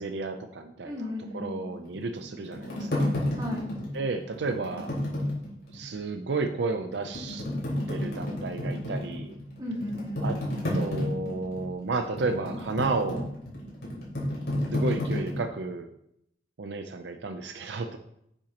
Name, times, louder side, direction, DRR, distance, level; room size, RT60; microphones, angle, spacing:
voice 1, 0.0-3.1 3.9-4.9 5.7-7.4 7.9-9.4 10.2-10.4 10.7-13.3 14.7-15.9 16.6-18.0, right 3 dB, 80° right, 7 dB, 0.5 m, -32 dB
voice 2, 0.8-1.7 3.3-3.7 9.6-10.3, left 1 dB, 25° right, -8 dB, 3.3 m, -35 dB
sound 1, 1.9-5.9 6.3-6.4 6.9-15.4, left 1 dB, 80° left, 3.2 m, -31 dB
9.9 x 7.2 x 2.9 m, 0.76 s
head